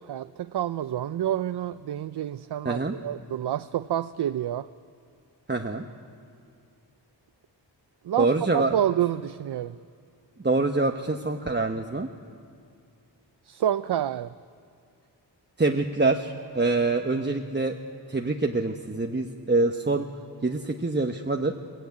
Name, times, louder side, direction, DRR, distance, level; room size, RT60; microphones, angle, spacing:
voice 1, 0.1-4.7 8.1-9.8 13.5-14.3, right 11 dB, 65° right, 14 dB, 0.5 m, -28 dB
voice 2, 5.5-5.8 8.2-8.8 10.4-12.1 15.6-17.8 18.1-20.1 20.4-21.5, right 3 dB, 25° right, 4 dB, 1.1 m, -25 dB
23.0 x 16.0 x 9.5 m, 2.3 s
cardioid pair, 65°, 44 cm